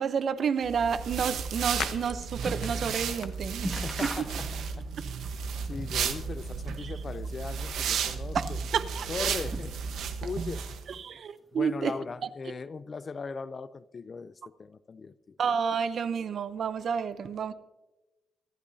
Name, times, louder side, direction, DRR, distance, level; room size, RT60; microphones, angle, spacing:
voice 1, 0.0-3.7 4.0-4.1 6.8-6.9 8.3-9.3 11.0-11.9 15.4-17.5, right 6 dB, 50° right, 0.7 m, -30 dB
sound 1, 0.6-9.2, left 8 dB, 70° left, 0.8 m, -47 dB
sound 2, 0.6-10.8, right 6 dB, 90° right, 1.1 m, -33 dB
sound 3, 2.3-2.9 3.2-3.3 3.6-4.9 5.2-6.1 6.5-7.3 8.0-9.0 9.5-10.2 10.5-11.2 11.9-12.0, equal, ahead, 1.8 m, -41 dB
voice 2, 3.7-4.5 4.8-4.9 5.6-8.6 9.1-9.8 10.2-10.8 11.5-15.4, left 4 dB, 35° left, 0.4 m, -39 dB
25.0 x 11.5 x 2.7 m
cardioid pair, 145°, 0 cm